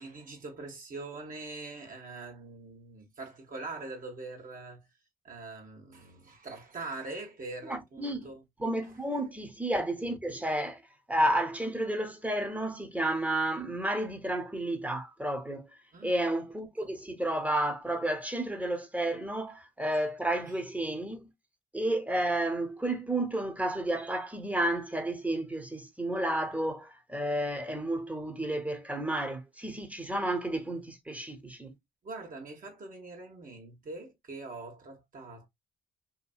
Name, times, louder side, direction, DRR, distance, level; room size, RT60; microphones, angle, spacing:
voice 1, 0.0-4.9 5.2-8.4 8.8-9.0 15.9-16.3 32.0-35.5, right 3 dB, 50° right, 1.3 m, -43 dB
voice 2, 7.7-8.3 8.6-10.8 11.1-15.7 16.0-21.3 21.7-31.7, right 1 dB, 10° right, 0.9 m, -31 dB
2.9 x 2.6 x 2.3 m
supercardioid pair, 60°, 18 cm